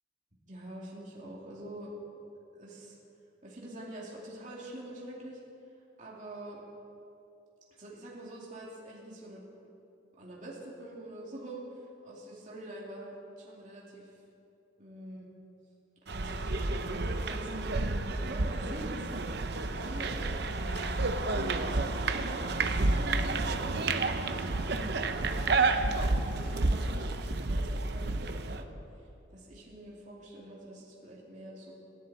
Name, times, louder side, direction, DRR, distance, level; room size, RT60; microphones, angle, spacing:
voice 1, 0.5-1.9 2.5-3.0 3.4-5.4 6.0-6.6 7.8-9.4 10.0-14.2 14.8-15.3 16.0-20.8 21.5-23.8 24.3-28.7 29.0-31.7, right 1 dB, 40° right, -5 dB, 2.6 m, -45 dB
sound 1, 16.1-28.6, right 3 dB, 55° right, 0.8 m, -30 dB
sound 2, 19.5-27.2, equal, 80° left, 4.7 m, -49 dB
27.0 x 11.0 x 4.3 m, 2.7 s
head